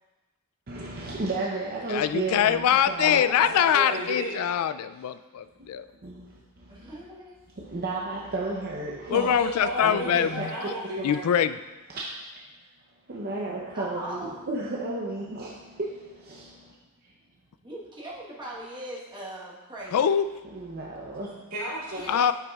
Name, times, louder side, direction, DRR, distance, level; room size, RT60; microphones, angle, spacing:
voice 1, 0.7-3.5 5.6-5.7 6.0-6.9 7.6-9.4 9.8-10.5 11.0-11.1 13.1-16.7 20.5-21.3, right 2 dB, 45° right, -3 dB, 0.7 m, -33 dB
voice 2, 1.9-5.9 9.1-10.5 11.0-11.6 19.9-20.3 22.1-22.3, left 9 dB, 75° left, 14 dB, 0.3 m, -23 dB
voice 3, 3.0-4.4 9.1-11.2 21.3-22.1, equal, 85° right, -7 dB, 2.3 m, -33 dB
voice 4, 6.7-7.4 13.7-14.4 17.6-20.1 22.0-22.3, right 1 dB, 20° right, -5 dB, 1.2 m, -40 dB
9.2 x 5.8 x 2.3 m, 1.1 s
head